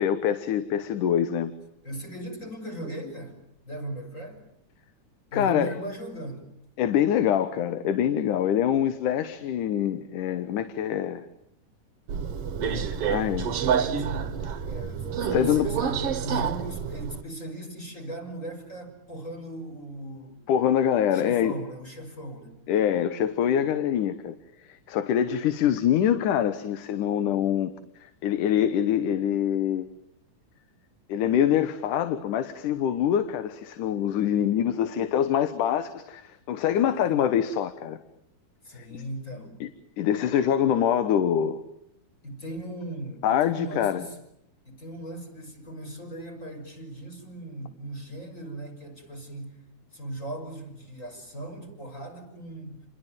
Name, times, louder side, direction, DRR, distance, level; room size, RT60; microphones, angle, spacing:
voice 1, 0.0-1.5 5.3-5.7 6.8-11.2 12.7-13.6 15.3-15.7 20.5-21.5 22.7-24.3 24.7-27.7 28.0-29.9 31.1-38.0 38.8-38.9 39.6-39.7 40.0-41.6 43.2-44.0, left 9 dB, 85° left, 2.8 m, -25 dB
voice 2, 1.8-3.4 3.6-4.4 5.3-6.5 13.4-20.4 21.1-22.6 36.9-37.3 38.6-39.6 42.2-44.2 44.6-49.6 49.9-52.8, right 1 dB, 25° left, 6.4 m, -38 dB
Subway metro underground, 12.1-17.2, right 7 dB, 55° right, 2.1 m, -28 dB
30.0 x 21.5 x 9.2 m
omnidirectional pair, 3.5 m